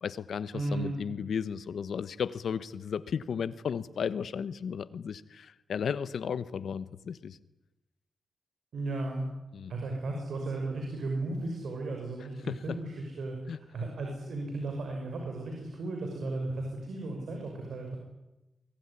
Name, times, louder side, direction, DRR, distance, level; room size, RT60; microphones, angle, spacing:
voice 1, 0.0-7.4 9.5-9.7 12.5-12.8 13.5-13.6, left 7 dB, 85° left, 15 dB, 1.2 m, -34 dB
voice 2, 0.5-0.9 8.7-9.2 9.7-18.0, right 2 dB, 85° right, 2 dB, 5.9 m, -35 dB
24.5 x 22.5 x 9.9 m, 1.0 s
wide cardioid pair, 125°, 0 cm